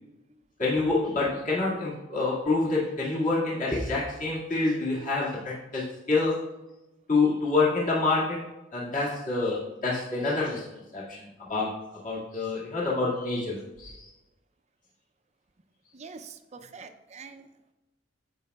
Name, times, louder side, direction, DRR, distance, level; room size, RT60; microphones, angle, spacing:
voice 1, 0.6-6.4 7.1-10.7 10.9-11.7 12.0-14.1, left 3 dB, 45° left, -6 dB, 2.0 m, -27 dB
voice 2, 15.9-17.5, right 5 dB, 35° right, 9 dB, 0.5 m, -45 dB
14.5 x 5.4 x 2.3 m, 1.0 s
head